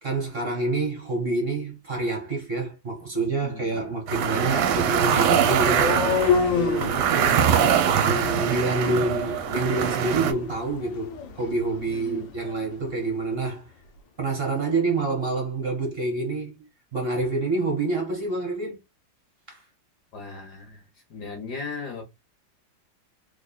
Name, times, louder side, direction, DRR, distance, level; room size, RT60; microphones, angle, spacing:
voice 1, 0.0-6.0 6.5-7.5 8.0-13.7 14.2-18.8 19.5-19.6, right 3 dB, 35° right, 1.2 m, -27 dB
voice 2, 3.4-3.8 11.9-12.3 20.1-20.8 21.1-22.0, left 4 dB, 65° left, 1.5 m, -37 dB
sound 1, 4.1-10.3, right 8 dB, 70° right, 1.1 m, -23 dB
sound 2, 4.7-12.7, left 6 dB, 85° left, 1.5 m, -30 dB
3.6 x 3.4 x 2.2 m
omnidirectional pair, 2.0 m